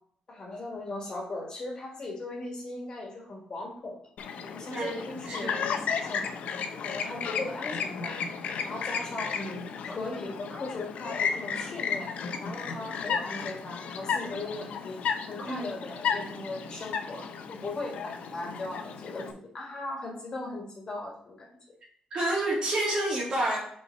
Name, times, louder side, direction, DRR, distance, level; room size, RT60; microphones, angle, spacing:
voice 1, 0.3-4.0 4.4-6.3 6.8-8.2 8.6-12.1 12.4-21.5, left 2 dB, 30° left, -1 dB, 1.7 m, -38 dB
Chirp tweet, 4.2-19.3, left 6 dB, 75° left, 0.7 m, -34 dB
voice 2, 4.7-5.6 15.4-15.8 22.1-23.7, right 1 dB, 45° right, -3 dB, 2.1 m, -29 dB
5.5 x 4.6 x 4.4 m, 0.65 s
wide cardioid pair, 175°, 2 cm